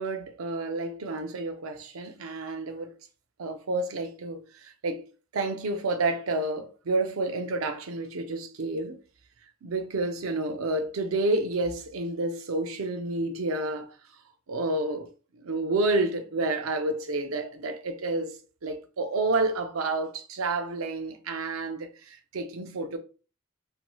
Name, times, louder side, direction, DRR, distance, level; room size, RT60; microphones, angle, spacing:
voice 1, 0.0-2.9 3.4-5.1 5.3-9.0 9.6-13.9 14.5-15.1 15.4-18.4 18.6-23.0, right 2 dB, 90° right, 0.5 m, -30 dB
3.0 x 2.7 x 2.2 m
head